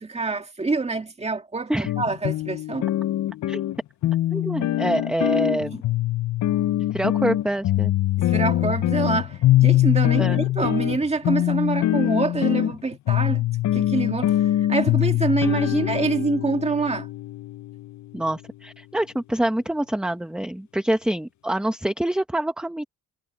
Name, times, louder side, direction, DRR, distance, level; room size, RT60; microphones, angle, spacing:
voice 1, 0.0-2.9 8.2-13.4 13.7-17.1, right 3 dB, 20° right, 1.9 m, -26 dB
sound 1, 1.8-18.1, left 14 dB, 55° left, 0.5 m, -23 dB
voice 2, 4.3-5.8 6.9-7.9 10.2-10.4 18.1-22.8, right 1 dB, ahead, 1.0 m, -26 dB
cardioid pair, 145°, 36 cm